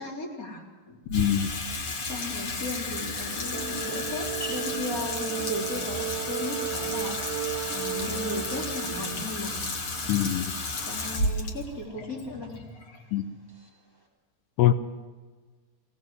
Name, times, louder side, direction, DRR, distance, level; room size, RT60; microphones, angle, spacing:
voice 1, 0.0-1.0 2.0-7.2 7.7-9.7 10.8-12.6, left 2 dB, 20° left, 0 dB, 3.9 m, -36 dB
voice 2, 1.1-1.5 10.1-10.5 13.1-13.3 14.6-14.7, left 11 dB, 85° left, 10 dB, 3.0 m, -23 dB
Water tap faucet / Sink (filling or washing), 1.1-13.5, left 2 dB, 40° left, 2.2 m, -33 dB
sound 1, 2.8-14.1, equal, 5° left, 3.8 m, -51 dB
sound 2, 3.5-9.4, right 13 dB, 75° right, 2.6 m, -35 dB
23.0 x 18.0 x 7.7 m, 1.4 s
omnidirectional pair, 4.8 m